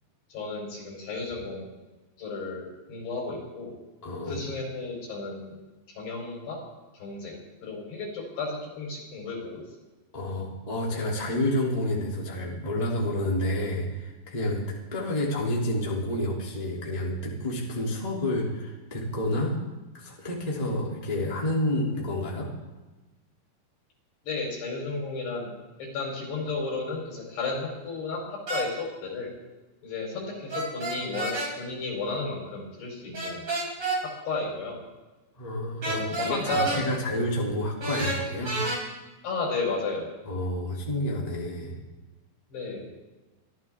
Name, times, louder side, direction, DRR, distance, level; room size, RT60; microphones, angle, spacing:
voice 1, 0.3-1.7 2.2-3.7 4.2-5.6 5.9-6.6 6.9-7.4 7.6-9.6 24.2-25.5 25.8-29.3 29.8-33.5 34.0-34.8 35.8-36.9 39.2-40.1 42.5-42.9, left 3 dB, 75° left, -1 dB, 6.2 m, -33 dB
voice 2, 4.0-4.4 10.1-14.6 14.9-19.6 20.0-22.5 35.4-36.0 36.3-38.6 40.3-41.8, left 1 dB, 10° left, -4 dB, 2.5 m, -29 dB
sound 1, 28.5-28.7 30.5-31.5 33.1-34.0 35.8-36.8 37.8-38.8, right 2 dB, 35° right, 4.9 m, -29 dB
25.0 x 15.0 x 3.6 m, 1.2 s
omnidirectional pair, 4.9 m